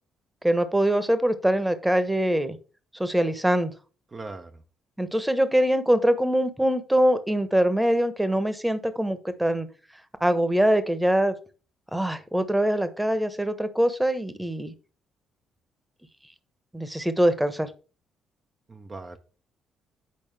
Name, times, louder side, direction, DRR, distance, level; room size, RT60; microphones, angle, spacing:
voice 1, 0.4-2.6 3.0-3.7 5.0-9.7 10.2-11.3 11.9-14.7 16.7-17.7, right 1 dB, 10° right, 1.1 m, -23 dB
voice 2, 4.1-4.6 18.7-19.2, right 3 dB, 35° right, 0.7 m, -39 dB
8.6 x 5.1 x 3.4 m
hypercardioid pair, 45°, 0 cm